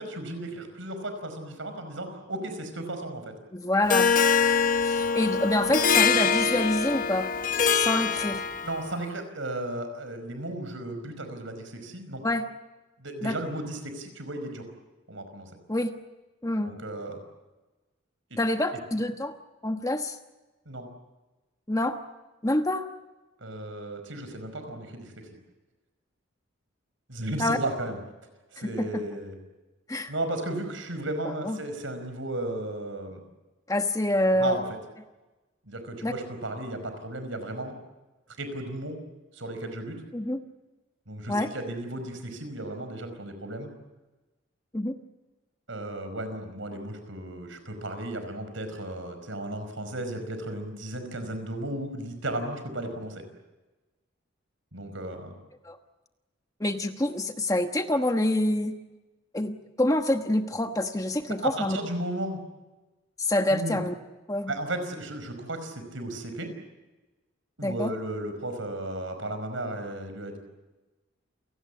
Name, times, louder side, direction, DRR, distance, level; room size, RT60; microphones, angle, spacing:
voice 1, 0.0-3.3 8.6-12.2 13.0-14.6 15.1-15.5 16.6-17.2 18.3-18.4 20.7-20.9 23.4-25.1 27.1-28.0 28.5-29.4 30.1-33.2 34.3-34.6 35.7-37.8 38.4-39.0 39.3-40.0 41.1-43.7 45.7-53.2 54.7-55.3 61.4-62.4 63.5-63.8 64.5-66.5 67.6-70.4, right 1 dB, 75° right, 8 dB, 5.2 m, -34 dB
voice 2, 3.5-4.1 4.8-7.3 7.7-8.5 12.2-12.5 13.2-13.3 15.7-15.9 16.4-16.7 18.4-19.3 19.6-20.2 21.7-22.0 22.4-22.9 27.4-27.6 28.8-29.0 29.9-30.1 31.4-31.6 33.7-34.6 36.0-36.1 40.1-40.4 41.3-41.5 44.7-44.9 55.6-55.8 56.6-58.7 59.3-61.8 63.2-63.9 64.3-64.5 67.6-67.9, left 1 dB, 15° left, 6 dB, 1.2 m, -26 dB
Harp, 3.9-8.9, left 6 dB, 40° left, 0.9 m, -24 dB
29.0 x 18.5 x 8.5 m, 1.1 s
head